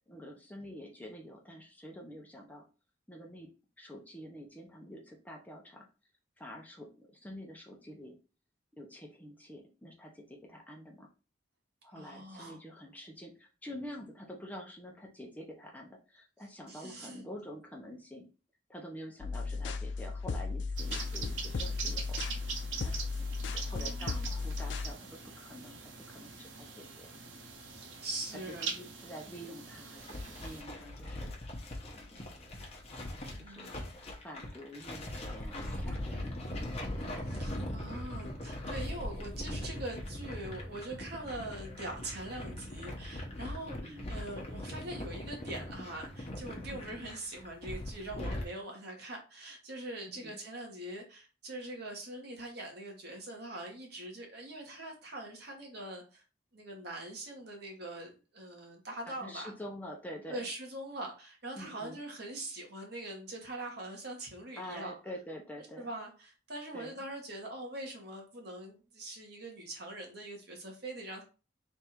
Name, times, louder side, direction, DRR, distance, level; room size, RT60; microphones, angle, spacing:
voice 1, 0.1-2.6 3.1-3.5 3.8-5.9 6.4-8.2 8.8-11.1 11.8-18.2 18.7-22.9 23.2-27.1 28.6-31.3 31.9-32.4 33.4-33.7 34.0-36.8 43.8-44.2 46.7-47.1 50.1-50.4 59.2-60.5 61.6-62.0 64.6-65.9 66.7-67.0, equal, 10° left, 0 dB, 0.7 m, -47 dB
voice 2, 11.9-12.6 16.7-17.2 23.7-24.3 27.7-28.7 33.3-33.9 37.2-56.2 56.5-59.5 60.3-64.9 65.8-71.2, right 1 dB, 60° right, 0 dB, 1.3 m, -43 dB
sound 1, 19.2-24.9, left 4 dB, 70° left, 0.4 m, -36 dB
sound 2, 20.8-30.6, right 5 dB, 85° right, 0.8 m, -43 dB
sound 3, 30.0-48.5, left 1 dB, 35° left, 0.9 m, -40 dB
3.4 x 2.6 x 4.4 m, 0.33 s
head